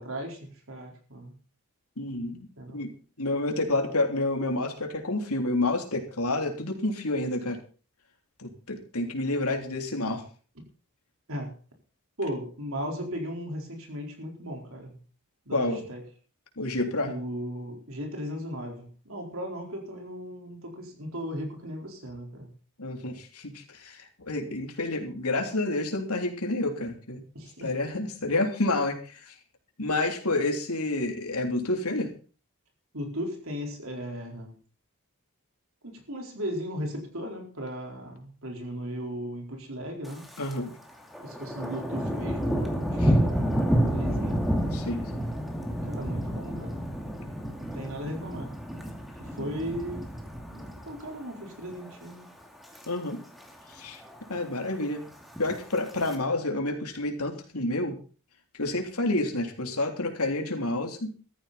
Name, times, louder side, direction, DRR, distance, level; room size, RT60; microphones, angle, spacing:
voice 1, 0.0-1.3 2.6-2.8 11.3-11.5 12.2-15.0 15.5-16.0 17.0-22.5 27.3-27.7 32.9-34.6 35.8-40.3 41.2-44.5 45.8-46.8 47.5-48.5 49.2-52.4, equal, 65° right, 2 dB, 4.5 m, -37 dB
voice 2, 2.0-2.5 2.7-2.9 3.2-7.6 8.4-10.2 15.5-15.8 16.6-17.1 22.8-27.2 27.6-29.3 29.8-32.1 40.4-40.7 43.0-43.2 44.7-45.1 49.4-49.5 52.9-53.2 53.7-54.0 54.3-55.0 55.4-58.0 58.6-61.1, left 2 dB, 80° left, 3 dB, 3.4 m, -29 dB
Thunder, 40.0-40.6 40.9-51.2 51.6-52.0 52.4-52.8 53.1-53.2 53.4-53.5 53.9-54.4 55.2-56.1, equal, ahead, 2.4 m, -30 dB
14.5 x 14.0 x 4.3 m, 0.38 s
head